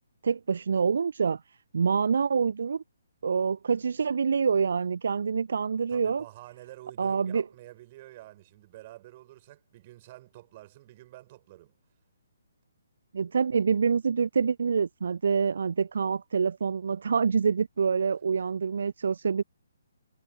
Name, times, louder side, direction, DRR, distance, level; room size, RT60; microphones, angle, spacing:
voice 1, 0.2-2.8 3.2-6.2 7.0-7.4 13.1-19.4, right 6 dB, 55° right, 0.4 m, -26 dB
voice 2, 5.9-11.7, right 16 dB, 30° right, 7.5 m, -49 dB
figure-of-eight pair, 135°, 0 cm